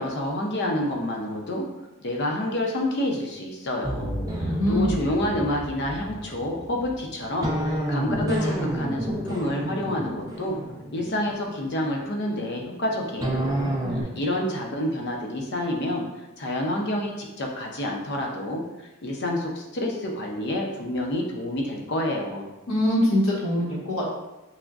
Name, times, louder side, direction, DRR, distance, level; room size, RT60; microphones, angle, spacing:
voice 1, 0.0-1.7 2.0-4.1 4.4-10.6 10.9-13.6 13.9-18.6 19.0-22.5, left 1 dB, 50° left, 0 dB, 0.6 m, -28 dB
sound 1, 3.8-12.1 13.2-14.0, right 1 dB, 15° right, 0.5 m, -30 dB
voice 2, 4.4-5.0 13.6-13.7 22.7-24.2, equal, 85° left, -6 dB, 1.1 m, -23 dB
5.9 x 2.1 x 2.5 m, 1.0 s
head